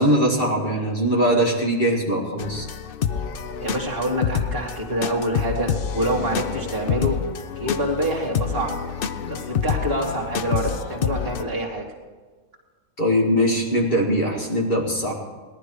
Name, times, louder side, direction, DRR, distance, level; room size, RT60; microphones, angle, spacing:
voice 1, 0.0-2.7 13.0-15.1, equal, 35° left, -1 dB, 2.1 m, -21 dB
sound 1, 2.4-11.4, left 7 dB, 60° left, 0.5 m, -28 dB
voice 2, 3.6-7.2 7.6-8.7 9.2-11.9, right 1 dB, 35° right, 0 dB, 2.4 m, -26 dB
18.0 x 11.5 x 4.8 m, 1.4 s
omnidirectional pair, 1.7 m